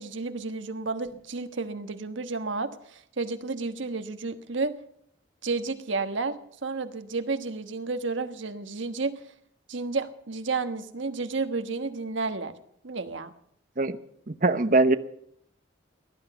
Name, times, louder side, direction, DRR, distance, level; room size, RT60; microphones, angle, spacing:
voice 1, 0.0-4.7 5.4-6.4 6.6-9.1 9.7-12.5 12.8-13.3, right 3 dB, 75° right, 9 dB, 1.3 m, -31 dB
voice 2, 14.3-15.0, right 2 dB, 40° right, 10 dB, 0.9 m, -22 dB
18.5 x 11.5 x 6.9 m, 0.70 s
head